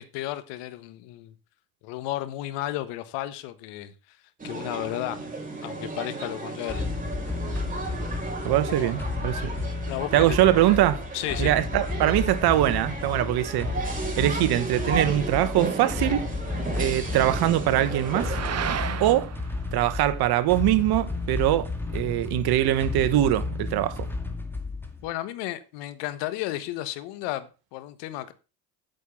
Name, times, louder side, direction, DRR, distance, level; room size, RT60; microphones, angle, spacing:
voice 1, 0.0-1.3 1.8-4.2 4.4-5.2 5.6-6.9 8.7-9.0 9.9-10.6 11.1-11.5 25.0-28.3, left 15 dB, 70° left, 1.4 m, -33 dB
sound 1, 4.4-19.0, right 3 dB, 20° right, 4.2 m, -34 dB
sound 2, 6.7-25.1, left 3 dB, 5° left, 2.1 m, -32 dB
voice 2, 8.4-9.4 10.1-11.0 11.4-13.9 14.2-16.3 16.8-18.4 19.0-19.3 19.7-24.1, right 13 dB, 55° right, 1.2 m, -23 dB
sound 3, 13.4-23.3, right 9 dB, 35° right, 1.1 m, -39 dB
9.1 x 6.4 x 5.9 m
hypercardioid pair, 75°, 44 cm